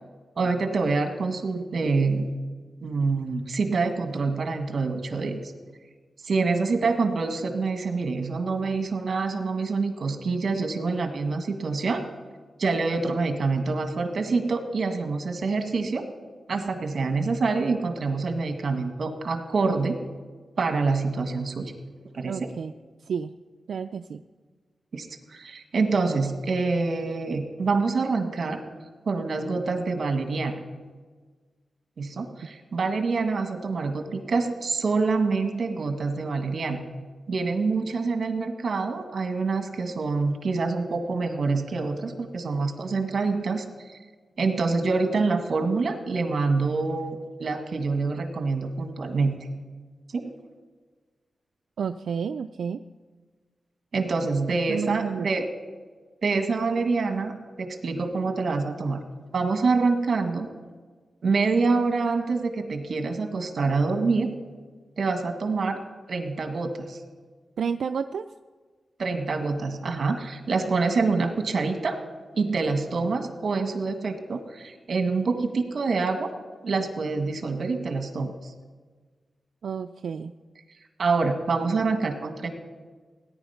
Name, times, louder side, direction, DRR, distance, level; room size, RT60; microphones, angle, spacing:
voice 1, 0.3-2.3 2.8-5.4 6.2-12.0 12.6-16.0 16.5-20.0 20.6-21.7 22.1-22.5 24.9-28.6 29.0-30.5 32.0-36.8 37.3-44.0 44.4-49.3 50.1-50.3 53.9-55.5 56.2-59.0 59.3-60.5 61.2-64.3 65.0-65.8 66.1-67.0 69.0-72.0 72.3-76.3 76.6-78.5 81.0-82.5, right 4 dB, 60° right, 6 dB, 1.7 m, -26 dB
voice 2, 22.2-22.7 23.0-23.3 23.7-24.2 32.4-32.5 51.8-52.8 54.5-55.3 67.6-68.3 79.6-80.3, right 6 dB, 80° right, 8 dB, 0.4 m, -31 dB
17.5 x 10.0 x 5.8 m, 1.4 s
wide cardioid pair, 110°, 0 cm